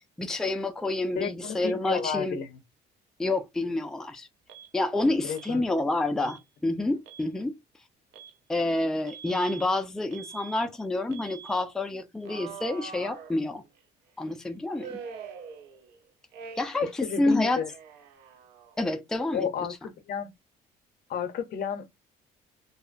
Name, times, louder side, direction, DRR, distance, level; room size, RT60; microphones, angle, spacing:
voice 1, 0.2-2.4 3.2-4.3 4.7-7.5 8.5-13.6 14.2-15.0 16.6-17.6 18.8-19.5, left 2 dB, 5° left, 0.4 m, -28 dB
voice 2, 1.1-2.6 5.2-5.6 6.2-6.3 16.8-17.7 19.3-19.7 20.1-20.3 21.1-21.9, left 7 dB, 60° left, 0.6 m, -32 dB
Alarm, 4.5-4.7 5.4-5.6 6.2-6.4 6.9-7.3 8.1-8.4 9.1-9.7 10.1-10.7 11.1-11.6 12.2-13.8 14.8-16.0 16.3-16.9 17.1-18.8, right 6 dB, 85° right, 0.5 m, -44 dB
2.6 x 2.0 x 2.4 m
cardioid pair, 110°, 17 cm